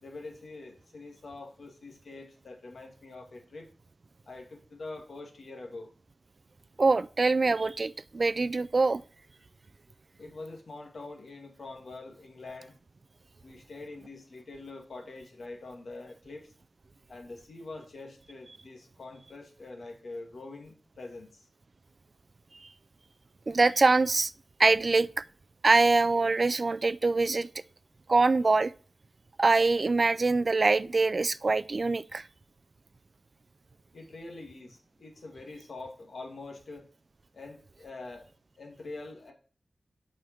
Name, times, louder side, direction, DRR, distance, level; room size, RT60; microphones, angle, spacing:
voice 1, 0.0-3.7 4.3-5.9 10.2-12.7 13.4-16.5 17.1-21.4 33.9-36.9 37.3-38.3 38.6-39.3, left 3 dB, 70° left, 2.0 m, -44 dB
voice 2, 6.8-9.0 23.5-24.3 24.6-25.2 25.6-27.5 28.1-28.7 29.4-32.3, right 3 dB, 45° right, 0.3 m, -24 dB
7.7 x 5.0 x 4.4 m
wide cardioid pair, 95°, 0 cm